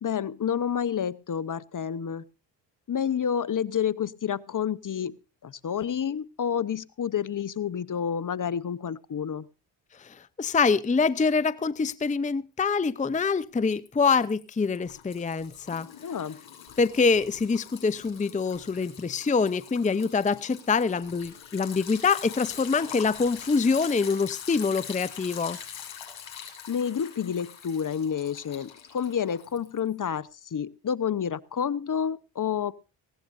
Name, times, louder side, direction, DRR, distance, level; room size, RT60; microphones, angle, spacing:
voice 1, 0.0-2.2 2.9-5.2 5.4-9.5 16.0-16.4 26.7-32.7, left 8 dB, 40° left, 19 dB, 0.9 m, -29 dB
voice 2, 10.0-15.9 16.8-25.6, left 4 dB, 15° left, 17 dB, 0.6 m, -25 dB
Liquid, 12.8-13.4 13.7-29.9, left 8 dB, 70° left, 6.6 m, -44 dB
19.5 x 16.5 x 2.6 m, 0.30 s
supercardioid pair, 55°, 47 cm